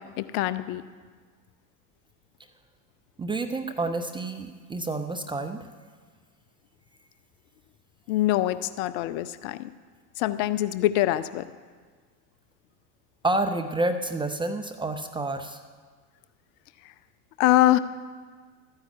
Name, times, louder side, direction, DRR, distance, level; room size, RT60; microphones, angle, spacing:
voice 1, 0.2-0.8 8.1-9.7 10.2-11.4 17.4-17.8, left 14 dB, 45° left, 14 dB, 0.7 m, -24 dB
voice 2, 3.2-5.7 13.2-15.6, right 2 dB, 10° right, 6 dB, 0.5 m, -29 dB
13.0 x 9.8 x 8.4 m, 1.5 s
hypercardioid pair, 90°, 49 cm